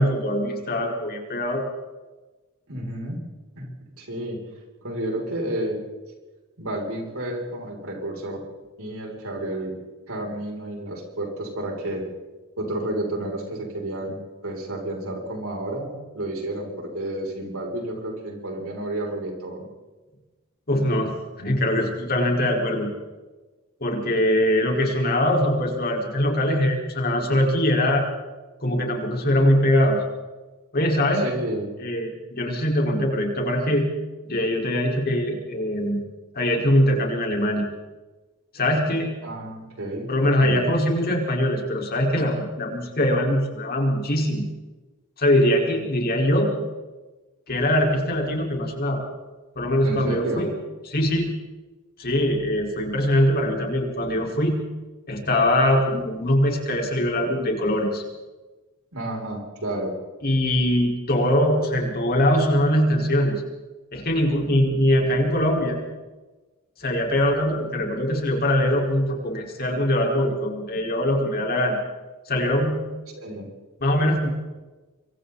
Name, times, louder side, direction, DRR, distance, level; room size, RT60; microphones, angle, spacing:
voice 1, 0.0-1.6 20.7-22.9 23.8-28.0 28.6-30.0 30.7-31.2 31.8-33.9 34.2-36.0 36.3-37.7 38.5-39.1 40.1-44.4 45.2-46.5 47.5-49.0 49.5-50.5 50.9-51.3 52.0-54.5 55.1-58.0 60.2-63.4 63.9-65.8 66.8-71.8 72.3-72.8 73.8-74.3, left 1 dB, 45° left, 0 dB, 4.9 m, -22 dB
voice 2, 2.7-3.2 3.6-3.7 4.0-4.4 4.8-5.8 6.6-8.4 8.8-9.7 10.1-12.0 12.6-19.7 31.2-31.7 39.2-40.1 40.4-40.7 49.8-50.5 58.9-59.9 73.1-73.5, right 1 dB, 65° right, 0 dB, 6.8 m, -31 dB
26.0 x 25.0 x 4.2 m, 1.2 s
head